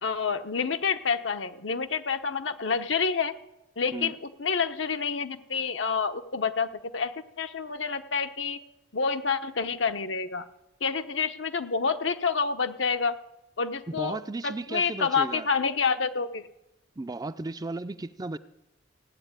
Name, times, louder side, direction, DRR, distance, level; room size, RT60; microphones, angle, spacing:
voice 1, 0.0-3.3 3.8-8.6 8.9-10.4 10.8-13.1 13.6-14.2 14.4-16.5, left 5 dB, 75° left, 9 dB, 1.0 m, -28 dB
voice 2, 13.9-15.5 17.0-18.4, right 2 dB, 20° right, 12 dB, 0.5 m, -35 dB
16.5 x 9.0 x 8.9 m, 0.97 s
head